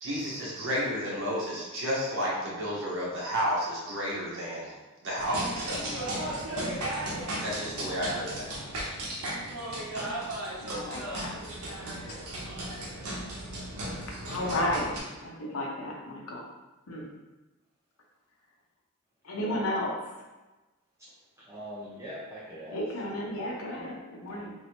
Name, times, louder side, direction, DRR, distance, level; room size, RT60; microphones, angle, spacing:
voice 1, 0.0-4.7 5.0-6.1 7.4-8.5, equal, 60° right, -5 dB, 1.1 m, -31 dB
sound 1, 5.2-15.0, right 1 dB, 80° right, 0.8 m, -35 dB
voice 2, 10.6-11.3 14.1-16.4 16.9-17.1 19.2-20.0 22.7-24.5, left 1 dB, 70° left, -2 dB, 0.7 m, -33 dB
voice 3, 21.0-23.9, equal, 15° right, -9 dB, 0.6 m, -44 dB
3.2 x 2.7 x 2.9 m, 1.1 s
head